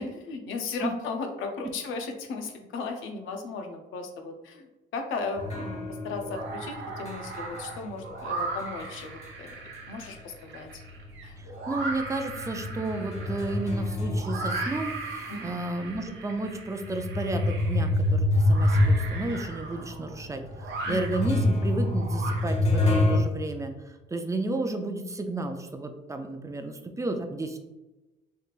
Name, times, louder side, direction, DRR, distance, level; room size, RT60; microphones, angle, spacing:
voice 1, 0.0-9.6 9.9-10.8 11.2-11.4 15.3-15.6 20.9-21.0, left 4 dB, 85° left, 4 dB, 0.6 m, -36 dB
sound 1, 5.1-5.8 6.1-22.9, right 3 dB, 75° right, 0.9 m, -38 dB
sound 2, 5.4-10.3 10.7-15.3 15.9-16.0 16.8-23.2, left 1 dB, 35° left, 0.9 m, -27 dB
voice 2, 11.4-27.6, right 2 dB, 15° right, 6 dB, 0.4 m, -32 dB
3.3 x 3.2 x 2.4 m, 1.1 s
cardioid pair, 90°, 20 cm